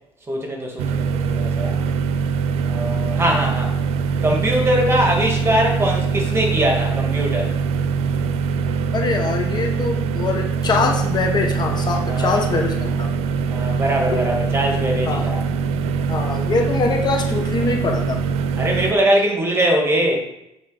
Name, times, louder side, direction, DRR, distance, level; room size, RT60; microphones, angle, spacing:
voice 1, 0.3-1.7 2.7-3.7 4.2-7.5 12.1-12.5 13.5-15.4 18.6-20.2, right 1 dB, 25° right, 1 dB, 2.1 m, -21 dB
sound 1, 0.8-18.9, right 5 dB, 90° right, 0.5 m, -23 dB
voice 2, 8.9-13.1 14.1-14.2 14.7-15.3 16.1-18.2, left 4 dB, 45° left, 3 dB, 1.1 m, -23 dB
8.0 x 4.0 x 5.0 m, 0.87 s
cardioid pair, 100°, 10 cm